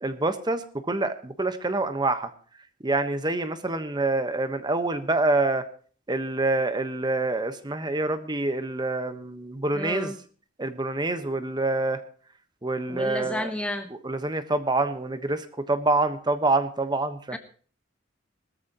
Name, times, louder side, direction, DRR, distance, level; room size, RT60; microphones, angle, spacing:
voice 1, 0.0-2.3 2.8-5.6 6.1-10.1 10.6-12.0 12.6-13.5 14.0-17.4, right 2 dB, 20° right, 10 dB, 1.2 m, -26 dB
voice 2, 9.7-10.2 12.9-13.9 17.3-17.4, left 1 dB, 5° left, 7 dB, 0.7 m, -31 dB
19.5 x 13.5 x 3.0 m, 0.43 s
head